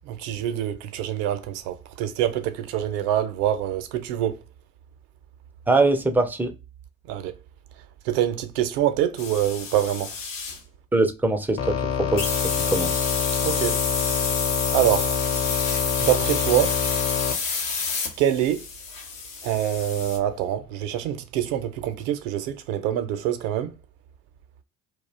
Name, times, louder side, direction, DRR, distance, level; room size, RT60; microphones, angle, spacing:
voice 1, 0.0-4.4 7.1-7.3 8.0-10.1 13.4-13.8 14.7-15.2 16.0-16.8 18.2-18.6 19.4-23.8, right 11 dB, 65° right, 0.6 m, -25 dB
voice 2, 5.7-6.5 10.9-13.1, right 2 dB, 5° right, 0.4 m, -23 dB
sound 1, 9.2-10.6 12.2-20.2, left 5 dB, 80° left, 0.7 m, -29 dB
sound 2, 11.6-17.3, left 7 dB, 40° left, 0.6 m, -26 dB
2.4 x 2.1 x 3.1 m
figure-of-eight pair, 55°, 39 cm